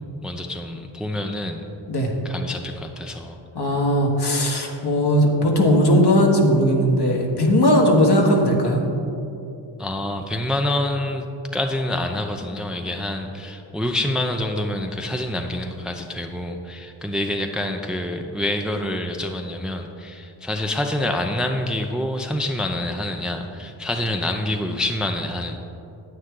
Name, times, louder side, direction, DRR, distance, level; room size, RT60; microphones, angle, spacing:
voice 1, 0.2-1.7 2.2-3.4 9.8-11.2 11.5-25.6, left 1 dB, ahead, 4 dB, 0.6 m, -27 dB
voice 2, 3.5-8.8, equal, 55° left, 1 dB, 1.6 m, -18 dB
9.5 x 8.6 x 3.8 m, 2.7 s
cardioid pair, 55°, 46 cm